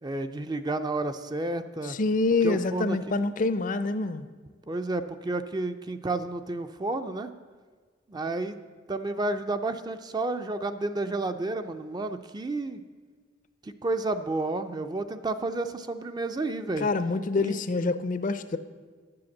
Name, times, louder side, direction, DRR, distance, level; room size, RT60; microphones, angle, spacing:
voice 1, 0.0-2.0 2.4-3.0 4.7-7.3 8.1-8.6 8.9-12.8 13.6-16.9 17.4-17.6, right 2 dB, 20° right, 9 dB, 0.4 m, -31 dB
voice 2, 1.9-4.3 16.8-18.6, left 3 dB, 45° left, 12 dB, 0.5 m, -26 dB
10.5 x 7.8 x 7.1 m, 1.5 s
head